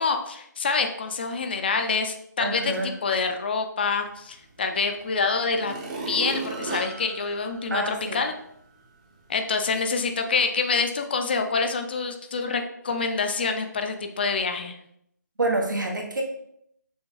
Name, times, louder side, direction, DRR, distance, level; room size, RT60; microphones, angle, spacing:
voice 1, 0.0-2.8 3.0-5.7 6.1-8.3 9.3-14.8, left 4 dB, 30° left, 6 dB, 0.4 m, -26 dB
voice 2, 2.4-2.9 7.7-8.2 15.4-16.2, right 2 dB, 85° right, 1 dB, 1.1 m, -27 dB
sound 1, 4.8-4.9 5.5-8.3 8.8-8.9, right 3 dB, 25° right, 0.6 m, -35 dB
6.1 x 2.1 x 3.1 m, 0.73 s
figure-of-eight pair, 160°, 10 cm